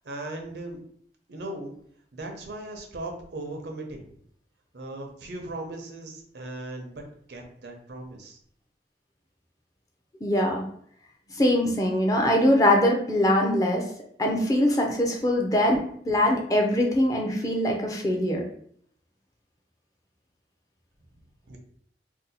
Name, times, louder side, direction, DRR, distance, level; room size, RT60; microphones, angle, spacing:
voice 1, 0.0-0.8 1.3-1.7 2.1-4.0 4.7-7.0 7.3-8.4 21.5-21.6, right 2 dB, 75° right, 3 dB, 0.6 m, -38 dB
voice 2, 10.2-10.6 11.4-13.8 14.2-15.8 16.1-18.4, left 1 dB, 20° left, 1 dB, 0.4 m, -22 dB
2.7 x 2.2 x 4.0 m, 0.62 s
head